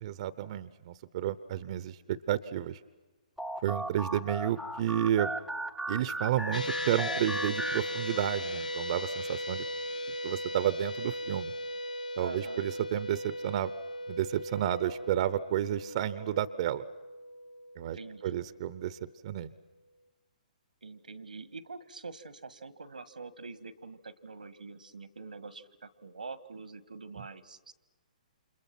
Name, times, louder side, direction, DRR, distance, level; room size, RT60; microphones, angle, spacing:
voice 1, 0.0-2.8 3.6-5.3 5.9-9.7 10.2-11.5 12.2-13.7 14.1-16.8 17.8-18.0 18.2-19.0 19.2-19.5, right 11 dB, 45° right, 16 dB, 0.9 m, -31 dB
sound 1, 3.4-8.5, right 1 dB, ahead, 0.8 m, -37 dB
sound 2, 6.5-18.9, left 1 dB, 80° left, 1.4 m, -38 dB
voice 2, 12.2-12.7 17.9-18.5 20.8-27.7, right 4 dB, 85° right, 15 dB, 1.6 m, -45 dB
29.5 x 27.0 x 6.0 m, 1.2 s
figure-of-eight pair, 130°, 4 cm